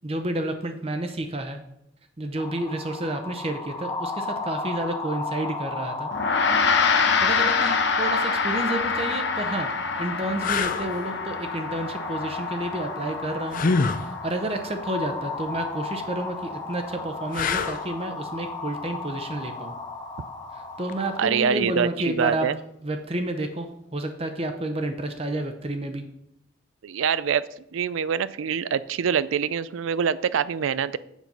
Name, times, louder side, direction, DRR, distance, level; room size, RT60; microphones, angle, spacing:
voice 1, 0.0-1.6 2.2-6.1 7.2-19.8 20.5-22.5 22.8-26.0, right 1 dB, 30° right, 6 dB, 0.7 m, -30 dB
sound 1, 2.4-21.3, left 3 dB, 20° left, 0.9 m, -35 dB
Gong, 6.1-15.6, left 5 dB, 60° left, 0.9 m, -26 dB
sound 2, 8.8-9.0 9.7-9.8 10.4-10.9 13.5-14.1 17.3-17.9 20.9-21.1, left 4 dB, 45° left, 0.5 m, -25 dB
voice 2, 21.2-22.6 26.8-27.4 27.7-31.0, right 7 dB, 80° right, 17 dB, 0.4 m, -25 dB
7.3 x 5.8 x 5.3 m, 0.78 s
head